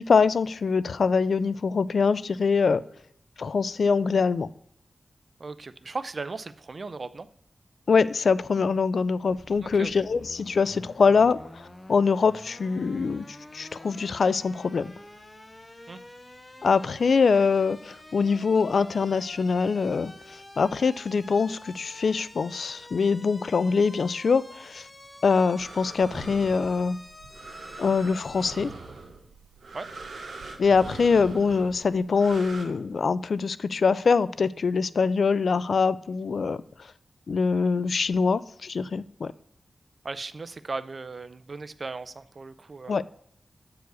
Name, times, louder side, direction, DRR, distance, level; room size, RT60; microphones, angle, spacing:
voice 1, 0.0-2.8 3.4-4.5 7.9-14.9 16.6-20.1 20.6-24.9 25.2-27.0 27.8-28.7 30.6-36.6 37.3-39.3 42.9-43.0, left 5 dB, 80° left, 0.3 m, -24 dB
voice 2, 5.4-7.3 9.6-9.9 15.9-16.0 29.7-29.9 40.0-43.0, right 3 dB, 55° right, 0.5 m, -37 dB
sound 1, 9.3-28.5, left 1 dB, 25° left, 1.0 m, -48 dB
sound 2, 25.6-32.6, right 3 dB, 90° right, 1.3 m, -42 dB
8.0 x 4.8 x 6.2 m
wide cardioid pair, 80°, 0 cm